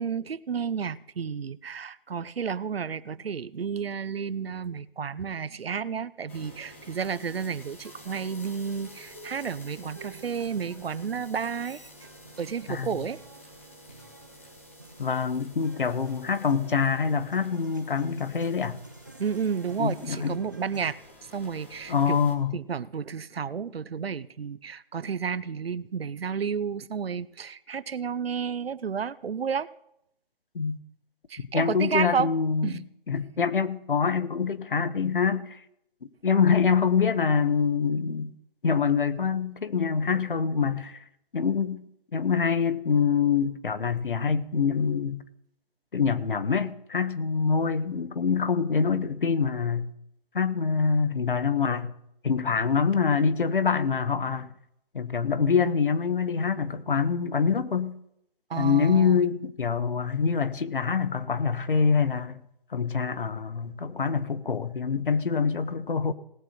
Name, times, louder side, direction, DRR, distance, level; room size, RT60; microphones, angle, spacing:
voice 1, 0.0-11.8 12.4-13.2 19.2-21.0 21.3-22.2 22.5-29.7 31.3-32.3 32.6-32.8 58.5-59.2, right 6 dB, 85° right, 0.7 m, -31 dB
sound 1, 6.3-22.3, left 1 dB, 10° left, 1.2 m, -51 dB
sound 2, 7.8-20.9, right 3 dB, 20° right, 0.6 m, -50 dB
voice 2, 15.0-18.8 19.8-20.3 21.9-22.6 30.5-30.8 31.5-35.6 36.2-38.3 38.6-41.0 41.3-41.8 42.1-45.2 45.9-49.9 50.3-51.9 52.2-54.5 54.9-57.9 58.6-62.4 62.7-66.1, left 6 dB, 60° left, 1.1 m, -25 dB
18.5 x 8.1 x 4.3 m
hypercardioid pair, 175°, 29 cm